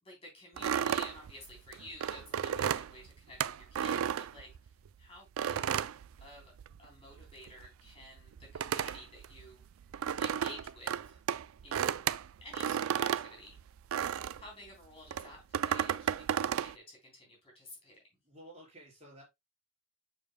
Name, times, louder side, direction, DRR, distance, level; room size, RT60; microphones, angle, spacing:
voice 1, 0.0-4.7 5.0-5.8 6.2-6.5 6.8-9.7 10.2-11.2 11.6-12.1 12.4-13.6 14.4-18.0, left 1 dB, 25° left, 3.7 m, -51 dB
sound 1, 0.6-4.9 5.4-6.9 7.1-14.5 15.1-16.7, right 9 dB, 80° right, 0.4 m, -33 dB
voice 2, 18.2-19.2, right 1 dB, 30° right, 4.5 m, -53 dB
7.0 x 7.0 x 2.2 m
head